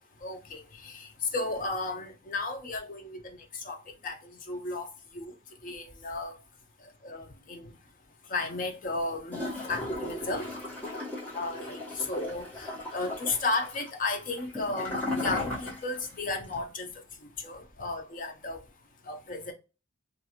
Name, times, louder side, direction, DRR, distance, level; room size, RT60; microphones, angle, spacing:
voice 1, 0.2-3.2 3.6-4.9 5.1-5.3 5.6-6.3 7.0-7.7 8.3-10.5 11.3-16.9 17.4-18.6 19.1-19.5, left 3 dB, 45° left, 0.5 m, -34 dB
Gurgling / Toilet flush, 9.3-16.1 16.4-16.5, left 2 dB, 10° left, 1.1 m, -36 dB
2.5 x 2.3 x 2.8 m
head